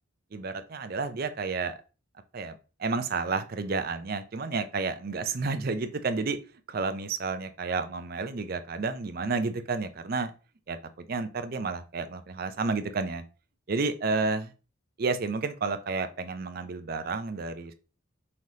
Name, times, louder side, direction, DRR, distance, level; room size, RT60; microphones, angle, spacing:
voice 1, 0.3-1.7 2.3-6.4 6.7-10.3 10.7-13.2 13.7-14.5 15.0-17.7, right 4 dB, 45° right, 10 dB, 0.5 m, -31 dB
5.6 x 3.2 x 2.7 m, 0.34 s
head